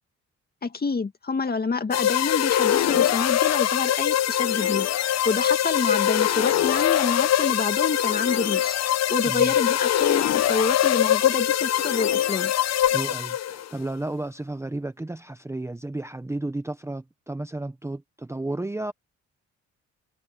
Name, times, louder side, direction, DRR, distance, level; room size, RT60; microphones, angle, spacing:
voice 1, 0.6-4.9 5.2-8.8 9.1-12.5, left 4 dB, 30° left, 2.1 m, -27 dB
sound 1, 1.9-13.7, left 11 dB, 60° left, 0.8 m, -23 dB
voice 2, 12.9-18.9, right 2 dB, 10° right, 0.9 m, -32 dB
cardioid pair, 90°, 30 cm